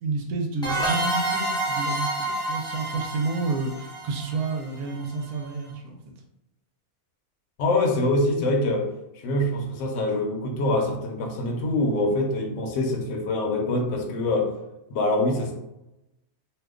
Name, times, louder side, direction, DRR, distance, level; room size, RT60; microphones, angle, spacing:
voice 1, 0.0-6.0, right 3 dB, 80° right, 3 dB, 1.1 m, -30 dB
sound 1, 0.6-5.1, right 2 dB, 5° left, 0.7 m, -29 dB
voice 2, 7.6-8.9 9.2-14.5 14.9-15.5, left 2 dB, 60° left, 1 dB, 0.9 m, -24 dB
2.7 x 2.2 x 3.5 m, 0.93 s
omnidirectional pair, 1.6 m